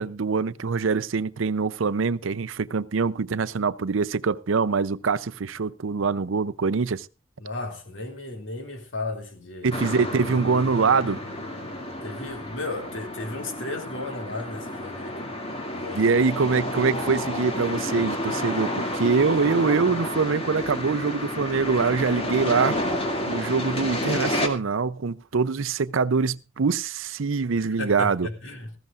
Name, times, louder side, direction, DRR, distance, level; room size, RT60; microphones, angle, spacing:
voice 1, 0.0-7.1 9.6-11.2 15.9-22.8 23.2-28.3, right 5 dB, 75° right, 0.6 m, -24 dB
voice 2, 7.4-9.8 12.0-15.3 15.7-16.1 27.6-28.7, left 2 dB, 70° left, 2.6 m, -34 dB
sound 1, 9.7-24.5, left 1 dB, 30° left, 2.3 m, -30 dB
19.0 x 15.0 x 2.5 m
head